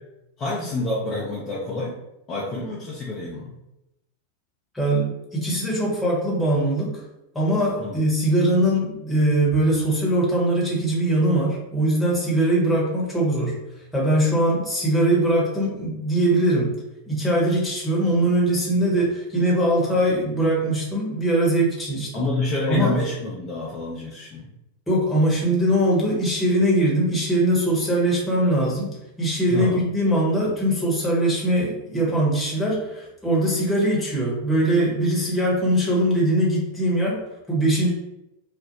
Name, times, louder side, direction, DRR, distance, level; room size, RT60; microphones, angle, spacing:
voice 1, 0.4-2.0 2.3-3.5 7.8-8.0 22.1-24.5 29.5-29.8, left 2 dB, 30° left, -6 dB, 0.6 m, -28 dB
voice 2, 4.7-7.0 7.3-13.6 13.9-22.2 22.7-22.9 24.9-37.9, right 1 dB, 5° left, -5 dB, 1.0 m, -21 dB
2.4 x 2.1 x 2.9 m, 0.90 s
figure-of-eight pair, 90°, 0 cm